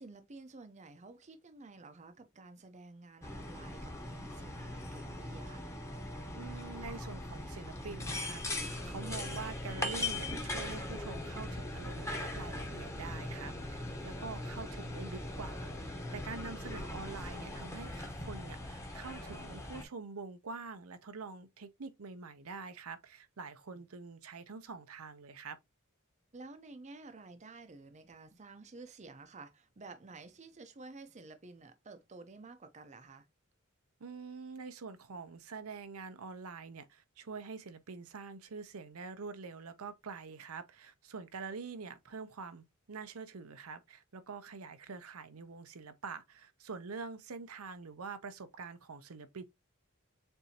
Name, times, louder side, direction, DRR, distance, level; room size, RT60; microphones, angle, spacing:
voice 1, 0.0-5.7 23.7-23.8 26.3-33.3, right 3 dB, 35° right, 0.6 m, -52 dB
sound 1, 3.2-19.8, left 1 dB, 15° left, 1.0 m, -40 dB
voice 2, 6.3-25.6 34.0-49.4, right 4 dB, 85° right, 0.7 m, -46 dB
6.9 x 2.6 x 2.8 m
head